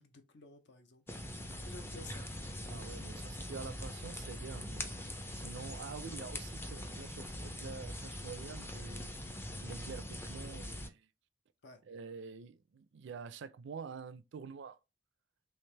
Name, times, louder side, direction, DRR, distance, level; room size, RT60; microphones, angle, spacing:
voice 1, 0.0-2.3 5.6-6.2 11.6-11.8, left 2 dB, 60° left, 0.7 m, -55 dB
sound 1, 1.1-10.9, left 1 dB, 10° left, 0.4 m, -43 dB
voice 2, 2.6-4.9 5.3-9.1 9.6-11.1 11.9-14.8, right 5 dB, 65° right, 0.4 m, -47 dB
3.3 x 2.9 x 3.2 m
head